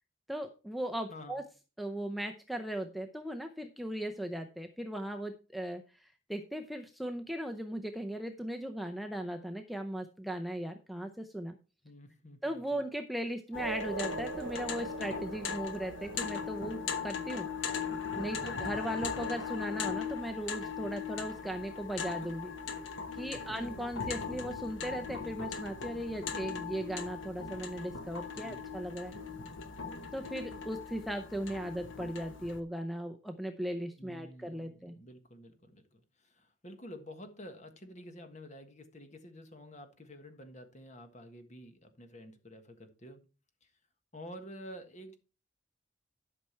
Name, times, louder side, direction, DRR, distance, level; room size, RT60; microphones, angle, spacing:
voice 1, 0.3-1.4 1.8-11.6 12.4-17.5 18.2-22.5 23.1-29.1 30.1-34.9, right 1 dB, ahead, 0.6 m, -38 dB
voice 2, 1.1-1.4 11.8-12.8 18.3-18.9 23.3-23.6 28.3-28.6 34.0-43.2 43.6-43.8 44.1-45.2, equal, 35° left, 1.5 m, -50 dB
sound 1, 13.5-32.6, left 6 dB, 70° left, 1.1 m, -39 dB
sound 2, 13.6-20.6, right 5 dB, 85° right, 0.7 m, -45 dB
11.5 x 5.9 x 4.4 m
head